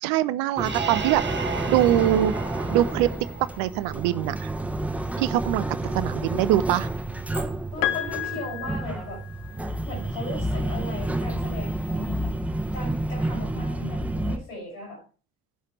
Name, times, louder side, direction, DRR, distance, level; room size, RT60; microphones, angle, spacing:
voice 1, 0.0-2.4 2.7-3.1 3.6-4.5 5.2-6.9, right 13 dB, 55° right, 0.6 m, -23 dB
sound 1, 0.6-14.4, right 1 dB, 5° right, 1.2 m, -30 dB
sound 2, 0.6-4.2, right 5 dB, 25° right, 1.1 m, -34 dB
voice 2, 7.6-9.2 9.8-12.4 12.7-15.0, left 1 dB, 75° left, 6.0 m, -37 dB
Piano, 7.8-9.8 11.1-11.2, left 13 dB, 55° left, 0.8 m, -31 dB
16.5 x 5.7 x 3.2 m
figure-of-eight pair, 50°, 41 cm